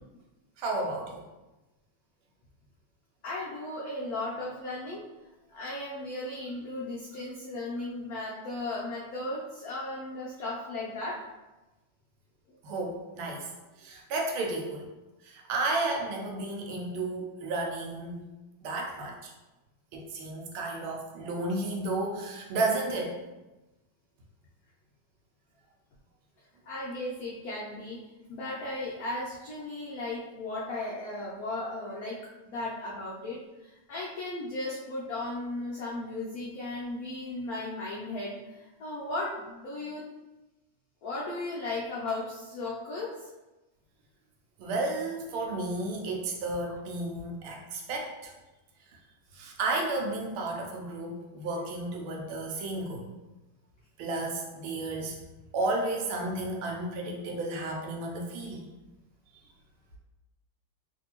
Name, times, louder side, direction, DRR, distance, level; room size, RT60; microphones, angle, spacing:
voice 1, 0.6-1.2 12.6-13.5 13.8-14.9 15.2-18.2 18.6-19.3 19.9-23.1 44.6-48.3 49.3-53.1 54.0-55.1 55.5-58.6, right 2 dB, 85° right, 0 dB, 1.5 m, -32 dB
voice 2, 3.2-5.0 5.5-11.2 26.7-28.0 28.3-32.2 32.5-40.0 41.0-43.3, left 2 dB, 85° left, -5 dB, 0.8 m, -36 dB
3.4 x 2.6 x 2.8 m, 1.1 s
omnidirectional pair, 2.2 m